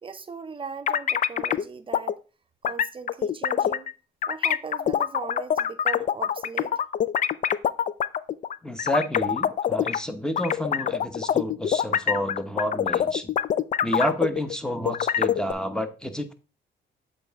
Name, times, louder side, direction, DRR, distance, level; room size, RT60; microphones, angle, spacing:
voice 1, 0.0-2.2 2.6-3.9 4.3-6.8, right 5 dB, 25° right, 0.7 m, -38 dB
sound 1, 0.9-1.6 1.9-2.1 2.6-3.9 4.2-10.0 10.4-14.6 14.9-15.5, left 9 dB, 40° left, 0.4 m, -25 dB
voice 2, 8.6-13.4 13.8-16.3, equal, 5° left, 0.9 m, -29 dB
7.6 x 4.1 x 3.6 m
cardioid pair, 90°, 20 cm